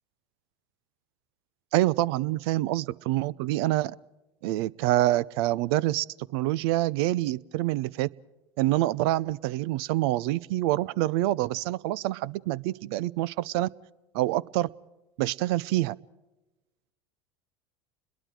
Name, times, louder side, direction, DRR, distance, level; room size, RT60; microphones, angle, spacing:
voice 1, 1.7-4.0 4.4-6.1 6.3-8.1 8.6-13.7 14.1-14.7 15.2-16.0, right 16 dB, 65° right, 22 dB, 0.7 m, -26 dB
30.0 x 22.0 x 4.8 m, 1.1 s
hypercardioid pair, 85°, 14 cm